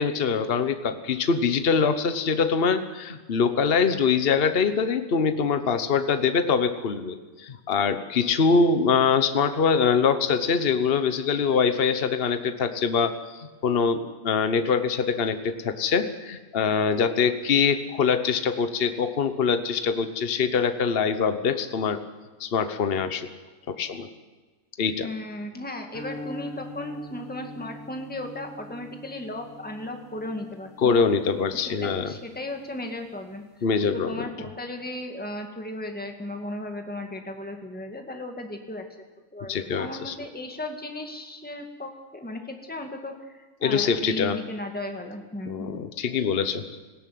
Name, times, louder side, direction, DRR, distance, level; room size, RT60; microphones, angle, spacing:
voice 1, 0.0-22.0 22.4-23.3 23.7-24.1 24.8-25.1 30.8-32.1 33.6-34.2 39.5-40.1 43.6-44.4 45.5-46.8, left 5 dB, 45° left, 9 dB, 1.2 m, -24 dB
voice 2, 25.0-31.1 31.5-33.4 33.9-38.9 39.3-45.8, left 1 dB, 5° left, 4 dB, 2.0 m, -36 dB
sound 1, 25.9-32.3, left 1 dB, 30° left, 6.6 m, -42 dB
20.0 x 16.5 x 9.3 m, 1.3 s
omnidirectional pair, 1.4 m